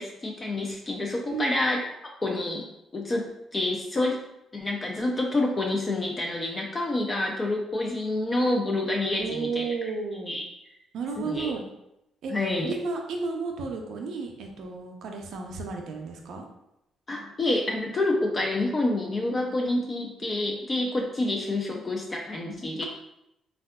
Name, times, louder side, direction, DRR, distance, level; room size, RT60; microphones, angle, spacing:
voice 1, 0.0-1.8 2.2-3.3 3.5-4.2 4.5-9.7 10.3-10.4 11.2-11.5 12.3-12.7 17.1-22.9, left 2 dB, 30° left, 0 dB, 0.4 m, -28 dB
voice 2, 9.1-10.3 10.9-11.7 12.2-12.3 12.7-16.4, right 4 dB, 75° right, 2 dB, 0.5 m, -33 dB
3.4 x 2.3 x 2.2 m, 0.85 s
cardioid pair, 90°, 0 cm